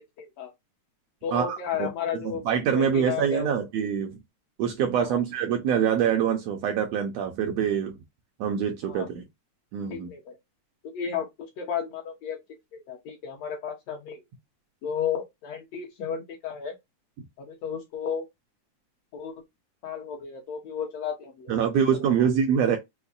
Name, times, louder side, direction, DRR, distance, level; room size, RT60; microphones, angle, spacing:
voice 1, 0.2-0.5 1.2-2.4 2.7-3.6 5.0-5.2 8.8-9.1 9.9-10.4 10.8-12.4 12.7-14.2 14.8-16.7 17.4-18.3 19.1-19.3 19.8-22.3, left 7 dB, 65° left, 2.0 m, -33 dB
voice 2, 1.3-1.9 2.2-4.2 4.6-8.0 8.4-9.2 9.7-10.1 21.5-22.8, right 8 dB, 75° right, 1.6 m, -25 dB
5.4 x 2.1 x 2.3 m
omnidirectional pair, 3.4 m